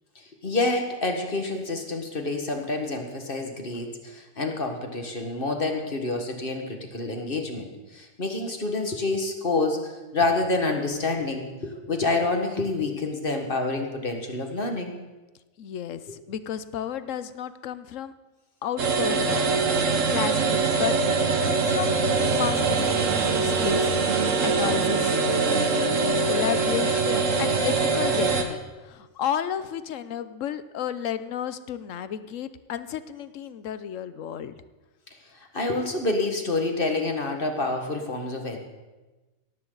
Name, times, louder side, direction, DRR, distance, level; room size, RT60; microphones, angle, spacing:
voice 1, 0.4-14.9 16.1-16.2 35.4-38.6, left 2 dB, 40° left, 3 dB, 1.9 m, -28 dB
voice 2, 15.6-18.1 18.6-19.6 20.1-21.0 21.4-34.5, left 9 dB, 70° left, 13 dB, 1.1 m, -32 dB
sound 1, 18.8-28.4, right 4 dB, 70° right, 1.7 m, -23 dB
17.5 x 14.5 x 4.0 m, 1.2 s
omnidirectional pair, 1.4 m